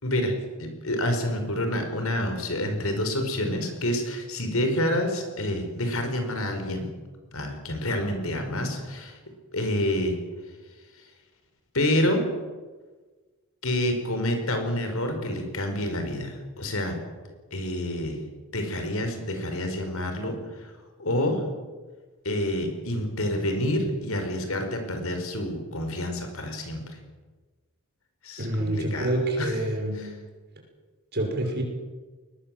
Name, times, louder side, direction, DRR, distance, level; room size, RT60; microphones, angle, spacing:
voice 1, 0.0-6.9 7.3-9.2 9.5-10.2 11.7-12.3 13.6-17.0 17.5-18.2 18.5-20.4 21.0-21.4 22.3-26.8 28.2-29.1 29.4-29.6 30.0-30.1, left 1 dB, 70° left, 5 dB, 5.2 m, -28 dB
voice 2, 28.4-30.0 31.1-31.6, right 1 dB, 50° right, 2 dB, 6.1 m, -27 dB
22.0 x 20.5 x 7.8 m, 1.3 s
head